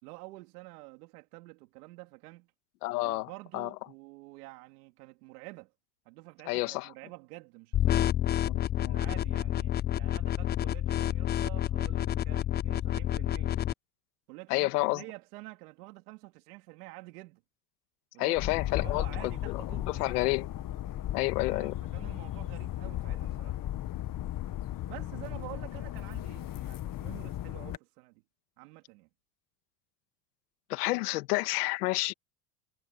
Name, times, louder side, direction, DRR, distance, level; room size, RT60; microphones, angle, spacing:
voice 1, 0.0-2.5 3.0-5.7 6.0-8.1 8.8-13.6 14.3-17.4 18.1-20.2 21.5-23.6 24.8-28.2 28.6-29.1, right 23 dB, 80° right, 3.4 m, -48 dB
voice 2, 2.8-3.7 6.5-6.9 8.4-9.0 14.5-15.0 18.2-19.6 20.0-20.5 21.1-21.7 30.7-32.1, left 21 dB, 85° left, 2.0 m, -30 dB
sound 1, 7.7-13.7, left 11 dB, 25° left, 0.4 m, -29 dB
sound 2, 18.3-27.8, left 13 dB, 45° left, 1.7 m, -36 dB
supercardioid pair, 90°, 45 cm